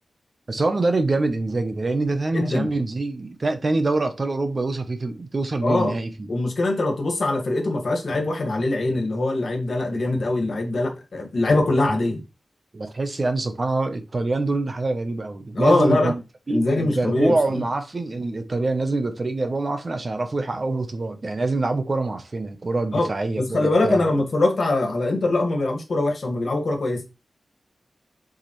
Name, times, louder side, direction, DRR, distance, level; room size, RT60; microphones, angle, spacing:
voice 1, 0.5-6.3 12.7-16.2 16.5-24.1, right 2 dB, 35° right, 0.8 m, -25 dB
voice 2, 2.3-2.7 5.6-5.9 6.3-12.2 15.5-16.1 16.5-17.3 22.9-23.1 23.4-27.0, left 2 dB, 60° left, 1.9 m, -22 dB
7.3 x 4.8 x 3.2 m
wide cardioid pair, 140°, 0 cm